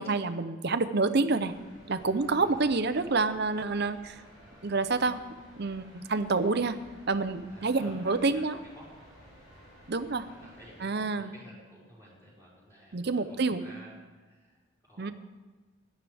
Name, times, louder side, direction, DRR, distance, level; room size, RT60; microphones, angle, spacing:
voice 1, 0.0-1.5 1.9-4.2 4.6-5.2 5.6-6.8 7.1-8.5 9.9-10.3 10.8-11.3 12.9-13.6 15.0-15.1, right 3 dB, 50° right, 11 dB, 0.6 m, -28 dB
sound 1, 1.4-10.8, equal, 80° left, 4.2 m, -54 dB
voice 2, 2.4-2.7 7.5-8.9 9.5-9.7 10.2-13.9 14.2-15.1, equal, 10° left, -8 dB, 4.8 m, -52 dB
17.0 x 11.0 x 3.5 m, 1.3 s
head